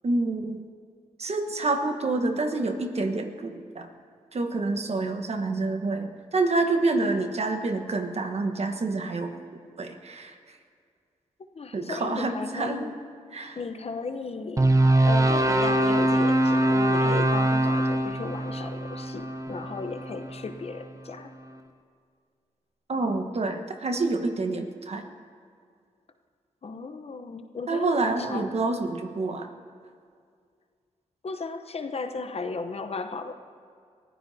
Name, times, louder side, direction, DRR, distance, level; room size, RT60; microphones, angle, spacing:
voice 1, 0.0-0.6 1.2-3.9 4.3-9.4 9.8-10.6 11.7-12.9 13.3-13.6 22.9-25.0 27.7-29.5, right 3 dB, 50° right, 5 dB, 1.3 m, -27 dB
voice 2, 11.5-13.0 13.6-14.7 15.1-21.3 26.6-28.5 31.2-33.3, left 4 dB, 50° left, 7 dB, 0.9 m, -35 dB
sound 1, 14.6-20.8, right 1 dB, 25° right, 0.9 m, -23 dB
23.0 x 15.0 x 2.8 m, 2.2 s
cardioid pair, 55°, 13 cm